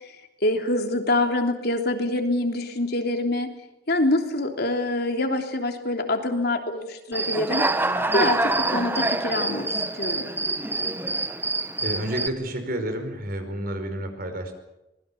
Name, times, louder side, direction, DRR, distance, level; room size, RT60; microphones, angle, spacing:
voice 1, 0.4-3.5 3.9-7.6 8.1-10.2, left 1 dB, 60° left, 4 dB, 3.2 m, -25 dB
Human voice / Cricket, 7.1-12.3, right 2 dB, 10° right, 1.1 m, -26 dB
voice 2, 11.8-14.5, right 1 dB, 55° right, 7 dB, 5.1 m, -30 dB
25.5 x 21.0 x 7.3 m, 0.94 s
head